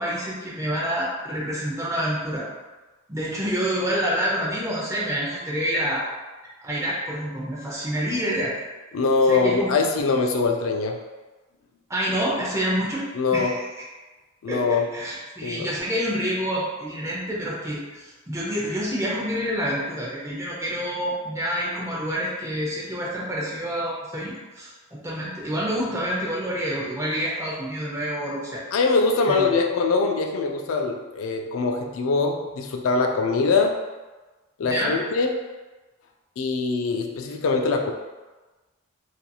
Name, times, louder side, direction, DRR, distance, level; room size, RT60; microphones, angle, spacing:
voice 1, 0.0-2.5 3.1-6.0 6.6-8.5 9.3-9.7 11.9-13.1 13.3-13.7 14.5-28.6 29.3-29.5 34.6-34.9, equal, 15° right, -6 dB, 0.6 m, -27 dB
voice 2, 8.9-11.0 13.1-13.5 14.4-14.9 15.4-15.7 28.7-33.8 34.6-35.3 36.4-37.9, left 4 dB, 75° left, 3 dB, 0.3 m, -23 dB
2.8 x 2.6 x 2.3 m, 1.2 s
head